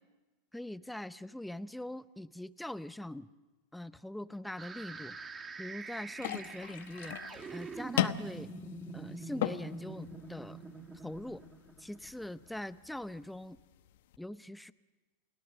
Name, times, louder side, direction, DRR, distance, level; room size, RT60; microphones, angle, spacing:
voice 1, 0.5-3.3 3.7-5.2 5.6-7.2 7.5-8.5 8.9-10.6 11.0-11.4 11.8-13.6 14.2-14.7, left 1 dB, 5° left, 14 dB, 0.7 m, -42 dB
sound 1, 4.6-12.5, right 4 dB, 20° right, 2.0 m, -45 dB
sound 2, 6.2-14.2, left 12 dB, 75° left, 1.0 m, -39 dB
29.5 x 18.0 x 6.7 m, 1.2 s
supercardioid pair, 125°, 0 cm